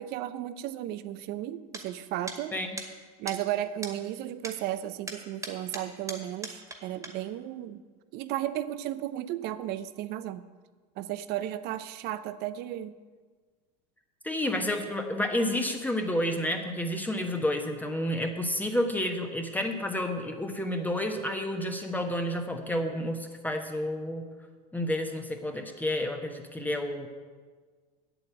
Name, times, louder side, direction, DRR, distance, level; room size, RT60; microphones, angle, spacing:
voice 1, 0.0-2.5 3.2-7.8 8.1-10.5 11.0-12.9, right 13 dB, 55° right, 14 dB, 0.7 m, -34 dB
sound 1, 1.7-1.8 2.3-2.4 2.8-2.9 3.3-3.4 3.8-3.9 4.4-4.6 5.1-6.8 7.0-7.1, right 2 dB, 15° right, 1.9 m, -38 dB
voice 2, 14.2-24.3 24.7-27.1, left 1 dB, 10° left, 4 dB, 1.2 m, -30 dB
8.0 x 8.0 x 8.6 m, 1.5 s
hypercardioid pair, 95°, 20 cm